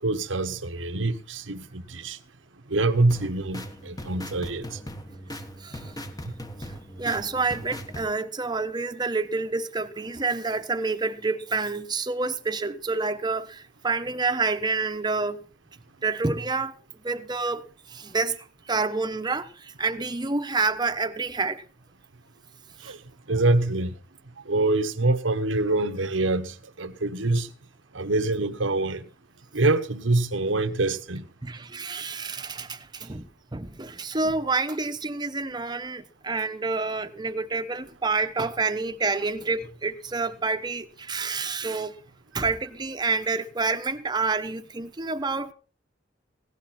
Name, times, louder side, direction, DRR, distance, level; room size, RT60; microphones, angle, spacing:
voice 1, 0.0-2.2 2.7-4.8 22.8-23.0 23.3-24.0 24.4-27.5 27.9-29.0 29.5-31.3, right 2 dB, 80° right, 1.2 m, -25 dB
sound 1, 3.0-8.1, equal, 20° left, 1.3 m, -39 dB
voice 2, 5.6-5.9 7.0-15.4 16.0-16.7 17.0-17.6 17.9-21.6 22.9-23.0 31.4-42.0 42.3-45.5, right 3 dB, 20° right, 1.0 m, -28 dB
17.0 x 12.5 x 4.3 m
head